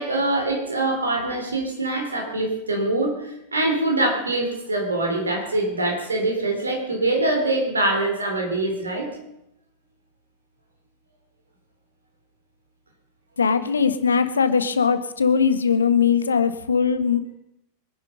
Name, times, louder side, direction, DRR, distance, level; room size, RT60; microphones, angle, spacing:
voice 1, 0.0-9.1, right 2 dB, 75° right, 1 dB, 4.1 m, -24 dB
voice 2, 13.4-17.4, left 6 dB, 75° left, 11 dB, 1.3 m, -20 dB
23.5 x 10.5 x 5.5 m, 0.80 s
figure-of-eight pair, 90°, 0 cm